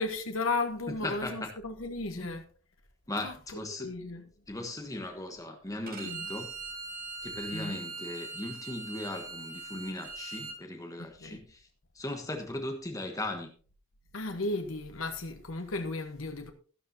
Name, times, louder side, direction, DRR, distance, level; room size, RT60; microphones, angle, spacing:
voice 1, 0.0-2.4 3.2-3.3 3.8-4.2 6.0-6.3 7.5-7.8 11.0-11.4 14.1-16.5, left 3 dB, 80° left, 1.3 m, -34 dB
voice 2, 1.0-1.5 2.2-2.3 3.1-3.9 4.5-6.5 7.2-11.7 11.9-13.5, left 1 dB, 15° left, 1.3 m, -38 dB
Bowed string instrument, 5.9-10.6, right 3 dB, 45° right, 2.4 m, -41 dB
12.5 x 12.0 x 2.8 m
head